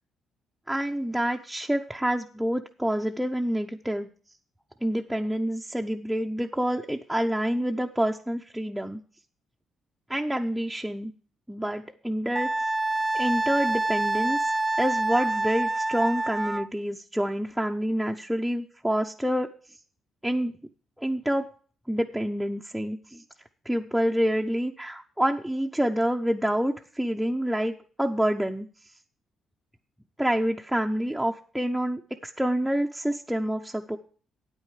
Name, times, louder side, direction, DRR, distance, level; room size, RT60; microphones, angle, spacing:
voice 1, 0.7-4.1 4.8-9.0 10.1-11.1 11.5-12.5 13.1-14.4 14.8-19.5 20.2-20.5 21.0-21.5 21.9-23.2 23.6-27.7 28.0-28.7 30.2-34.0, equal, 5° right, 0 dB, 0.7 m, -27 dB
Wind instrument woodwind instrument, 12.4-16.7, right 2 dB, 20° right, 0.4 m, -27 dB
9.1 x 8.9 x 4.9 m, 0.41 s
cardioid pair, 90°, 0 cm